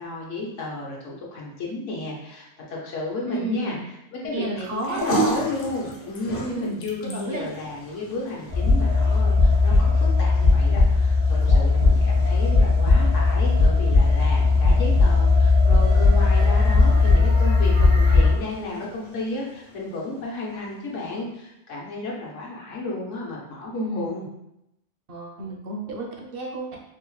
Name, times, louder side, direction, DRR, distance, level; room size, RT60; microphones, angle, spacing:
voice 1, 0.0-24.3, left 2 dB, 75° left, -3 dB, 1.2 m, -33 dB
voice 2, 3.3-3.8 4.3-5.3 6.4-7.5 23.7-24.1 25.1-26.8, right 2 dB, 55° right, 0 dB, 0.7 m, -32 dB
sound 1, 4.6-21.1, right 2 dB, 50° left, 0.8 m, -36 dB
sound 2, 8.5-18.3, left 3 dB, 90° right, 1.8 m, -18 dB
4.6 x 2.1 x 3.1 m, 0.84 s
omnidirectional pair, 1.3 m